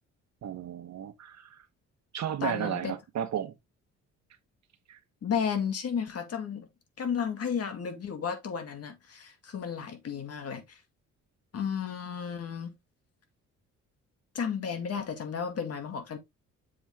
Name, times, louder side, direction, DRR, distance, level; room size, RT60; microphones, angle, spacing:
voice 1, 0.4-1.6 2.1-3.5 4.9-5.0, right 10 dB, 60° right, 1.3 m, -34 dB
voice 2, 2.4-2.9 5.2-6.7 7.0-10.8 11.5-12.7 14.3-16.2, left 7 dB, 55° left, 2.0 m, -33 dB
7.2 x 4.6 x 3.6 m
cardioid pair, 90°, 30 cm